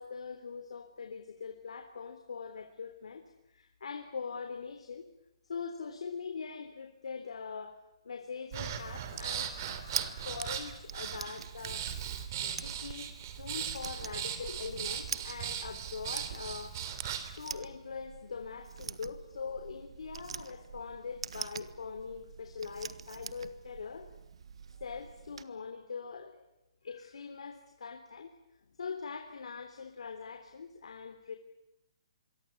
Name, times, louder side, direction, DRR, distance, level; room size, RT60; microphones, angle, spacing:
voice 1, 0.0-3.2 3.5-5.1 5.4-7.8 8.0-9.5 10.2-11.9 12.4-13.1 13.3-16.8 17.4-24.1 24.8-26.4 26.8-28.3 28.8-31.3, left 5 dB, 85° left, 6 dB, 3.4 m, -42 dB
Breathing, 8.5-17.4, right 9 dB, 35° right, 3.2 m, -38 dB
sound 1, 9.2-25.4, right 6 dB, 70° right, 1.5 m, -45 dB
26.5 x 23.5 x 8.5 m, 0.88 s
hypercardioid pair, 170°, 3 cm